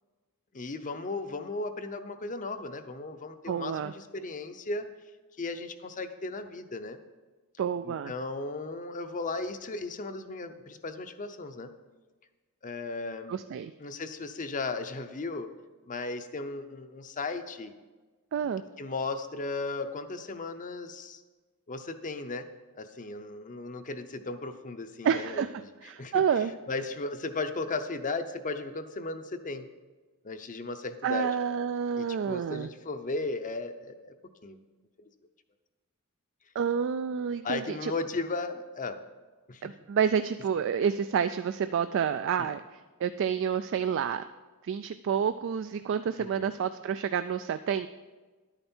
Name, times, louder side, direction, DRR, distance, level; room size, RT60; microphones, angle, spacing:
voice 1, 0.5-4.9 5.4-7.0 7.8-11.7 12.6-13.3 13.8-15.5 15.8-17.7 18.8-21.2 21.7-22.5 22.7-25.7 26.0-26.2 26.7-29.7 30.2-31.3 32.0-34.1 34.4-34.6 35.0-35.1 37.4-39.0 39.5-39.6 42.4-42.5 46.2-46.5, left 3 dB, 35° left, 9 dB, 0.6 m, -36 dB
voice 2, 3.5-3.9 7.6-8.1 13.3-13.7 18.3-18.6 25.0-25.5 25.8-26.5 31.0-32.7 36.6-37.9 39.6-42.6 43.0-44.2 44.6-47.9, right 7 dB, 60° right, 11 dB, 0.3 m, -29 dB
11.0 x 9.0 x 4.4 m, 1.3 s
head